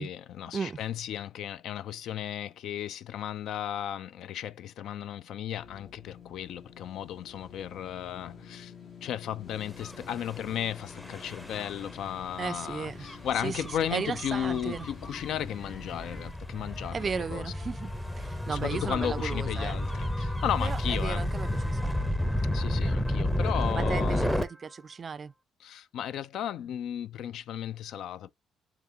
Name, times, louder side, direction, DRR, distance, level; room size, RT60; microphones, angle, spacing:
voice 1, 0.0-8.7 9.0-17.5 18.5-21.3 22.5-24.4 25.6-28.3, left 10 dB, 80° left, 0.3 m, -35 dB
sound 1, 5.6-16.3, left 6 dB, 60° left, 1.3 m, -49 dB
Gull seagull / Waves surf / Siren, 9.7-24.4, left 1 dB, 10° left, 0.7 m, -32 dB
voice 2, 12.4-13.0 13.4-13.6 13.9-14.9 16.9-19.8 20.6-22.1 23.7-25.3, right 5 dB, 40° right, 0.3 m, -35 dB
3.5 x 3.5 x 2.7 m
cardioid pair, 90°, 0 cm